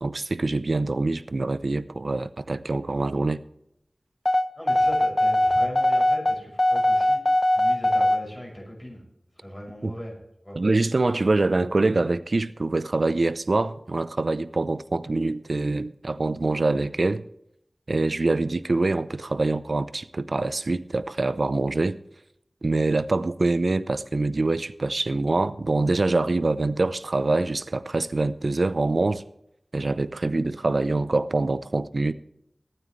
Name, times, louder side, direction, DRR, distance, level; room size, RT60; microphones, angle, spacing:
voice 1, 0.0-3.4 9.8-9.9 10.6-17.2 17.9-22.0 22.6-29.2 29.7-32.1, right 2 dB, 70° right, 0.7 m, -25 dB
sound 1, 4.3-8.2, left 1 dB, 35° left, 0.9 m, -21 dB
voice 2, 4.6-7.2 7.5-9.0 9.4-10.2 10.4-10.6, equal, 15° left, 6.4 m, -38 dB
23.0 x 9.2 x 3.2 m
wide cardioid pair, 55°, 0 cm